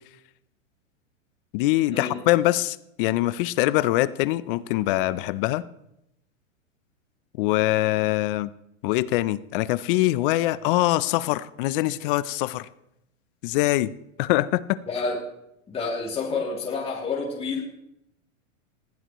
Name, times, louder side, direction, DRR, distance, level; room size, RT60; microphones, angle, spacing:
voice 1, 1.5-5.6 7.4-8.5 8.8-12.7 13.4-13.9 14.2-14.8, left 17 dB, 45° left, 17 dB, 0.7 m, -23 dB
voice 2, 14.9-15.2 15.7-17.6, left 4 dB, 15° left, -3 dB, 2.9 m, -29 dB
20.0 x 15.0 x 3.1 m, 0.82 s
hypercardioid pair, 135°, 38 cm